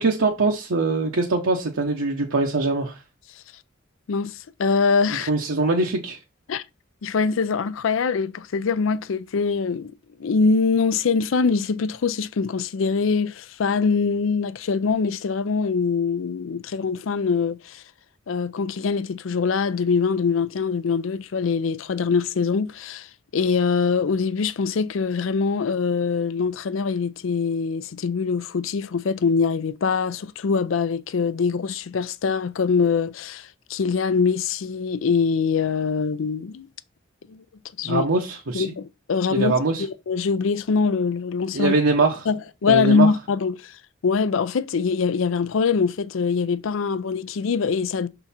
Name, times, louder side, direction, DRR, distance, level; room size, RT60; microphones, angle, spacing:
voice 1, 0.0-3.0 5.3-6.2 37.8-38.7 39.3-39.8 41.5-42.3 42.7-43.1, right 3 dB, 75° right, 0.8 m, -22 dB
voice 2, 4.1-5.3 6.5-6.6 7.0-9.9 10.2-17.8 18.3-36.7 37.3-37.4 37.8-38.1 38.5-41.7 42.3-48.1, left 5 dB, 70° left, 0.4 m, -23 dB
6.0 x 3.9 x 4.2 m
head